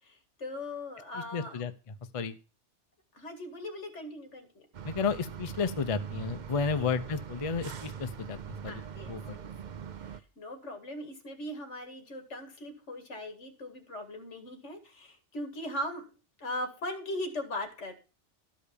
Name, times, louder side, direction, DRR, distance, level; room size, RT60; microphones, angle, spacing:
voice 1, 0.0-1.7 3.1-4.7 6.7-6.9 8.7-9.2 10.1-16.1 16.4-17.9, left 1 dB, 80° left, 6 dB, 2.3 m, -39 dB
voice 2, 1.3-1.7 2.1-2.3 4.8-8.8 9.1-9.4, left 5 dB, 35° left, 10 dB, 0.7 m, -32 dB
sound 1, 4.7-10.2, right 7 dB, 50° right, 0.7 m, -42 dB
12.5 x 5.2 x 6.8 m, 0.34 s
omnidirectional pair, 1.2 m